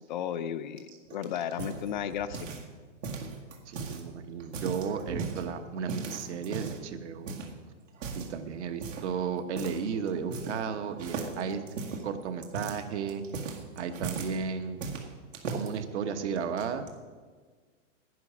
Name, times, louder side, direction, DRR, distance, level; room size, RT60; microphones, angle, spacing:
voice 1, 0.0-2.5, left 9 dB, 40° left, 11 dB, 0.4 m, -34 dB
sound 1, 0.8-2.7 3.0-4.0 4.4-5.4 5.9-6.9 7.3-7.5 7.9-8.3 8.8-9.1 9.6-9.8 10.1-10.7 11.0-14.4 14.8-15.7 16.4-16.9, right 4 dB, 80° right, 2.1 m, -37 dB
voice 2, 3.7-7.3 8.1-11.6 12.0-13.2 13.8-14.8 15.5-16.9, right 6 dB, 65° right, 8 dB, 1.3 m, -34 dB
11.0 x 9.7 x 6.2 m, 1.5 s
hypercardioid pair, 150°, 38 cm